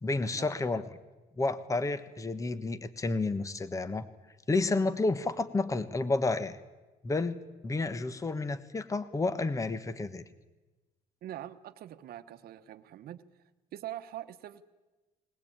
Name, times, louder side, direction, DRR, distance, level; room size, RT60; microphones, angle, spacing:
voice 1, 0.0-0.8 1.4-4.1 4.5-6.6 7.0-7.4 7.6-10.2, left 3 dB, 20° left, 13 dB, 1.2 m, -30 dB
voice 2, 11.2-13.2 13.7-14.6, right 12 dB, 65° right, 8 dB, 1.2 m, -43 dB
20.0 x 19.5 x 8.8 m, 1.1 s
cardioid pair, 110°, 17 cm